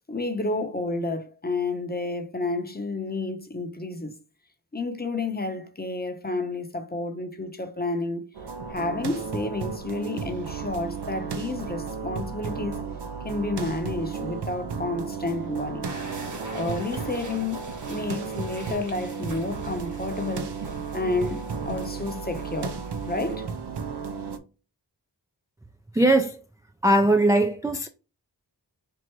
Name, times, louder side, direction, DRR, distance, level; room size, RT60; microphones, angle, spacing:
voice 1, 0.1-4.2 4.7-8.3 8.7-12.8 13.2-15.9 16.5-20.6 20.9-23.5, left 2 dB, 20° left, 0.8 m, -30 dB
sound 1, 8.3-24.4, right 5 dB, 65° right, 0.7 m, -34 dB
sound 2, 15.8-23.4, right 2 dB, 45° right, 1.2 m, -43 dB
voice 2, 25.9-26.4 26.8-27.9, right 1 dB, 10° right, 0.3 m, -20 dB
4.5 x 2.5 x 3.0 m
wide cardioid pair, 65°, 43 cm